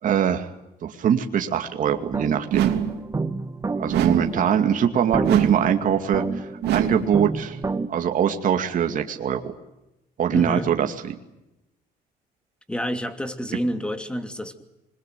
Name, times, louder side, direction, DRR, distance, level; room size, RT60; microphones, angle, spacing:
voice 1, 0.0-0.5 0.8-2.7 3.7-7.6 7.9-9.5 10.2-11.2, right 8 dB, 50° right, 5 dB, 2.4 m, -23 dB
sound 1, 1.9-7.9, right 3 dB, 20° right, 1.6 m, -31 dB
sound 2, 2.5-3.1 3.9-4.4 5.2-5.8 6.6-7.2, right 9 dB, 80° right, 3.2 m, -24 dB
voice 2, 10.3-10.7 12.7-14.6, equal, 5° left, 8 dB, 2.8 m, -28 dB
26.5 x 22.0 x 9.2 m, 0.93 s
cardioid pair, 110°, 17 cm